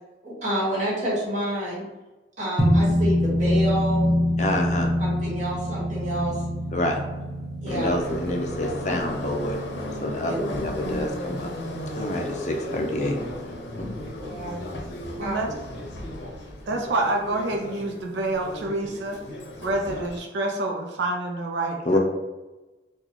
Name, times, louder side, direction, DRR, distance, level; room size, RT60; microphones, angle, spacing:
voice 1, 0.2-1.8 2.4-4.1 5.0-6.4 7.6-7.9 10.2-10.3 14.2-14.6 15.2-15.4, right 1 dB, 40° right, -6 dB, 1.4 m, -28 dB
sound 1, 2.6-13.3, equal, ahead, 0.8 m, -26 dB
voice 2, 4.4-4.9 6.7-7.0 7.7-9.6 10.0-11.5 12.0-13.2 13.5-14.0 21.8-22.0, left 1 dB, 40° left, 2 dB, 0.5 m, -27 dB
Subway metro underground, 7.7-20.2, left 1 dB, 80° left, 0.6 m, -35 dB
voice 3, 16.7-19.2 19.6-22.0, right 2 dB, 80° right, 2 dB, 0.5 m, -27 dB
3.9 x 2.3 x 2.9 m, 1.1 s
head